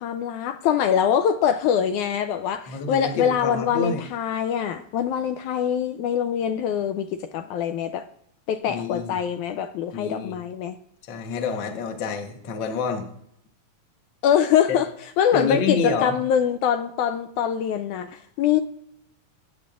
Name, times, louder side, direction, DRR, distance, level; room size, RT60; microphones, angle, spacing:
voice 1, 0.0-8.1 8.5-10.8 14.2-14.9 15.2-18.6, left 8 dB, 80° left, 1.9 m, -24 dB
voice 2, 2.7-4.0 8.6-9.2 9.9-10.4 11.1-13.1 14.7-14.8 15.3-16.1, left 5 dB, 55° left, 1.3 m, -28 dB
20.5 x 8.7 x 2.5 m
omnidirectional pair, 3.8 m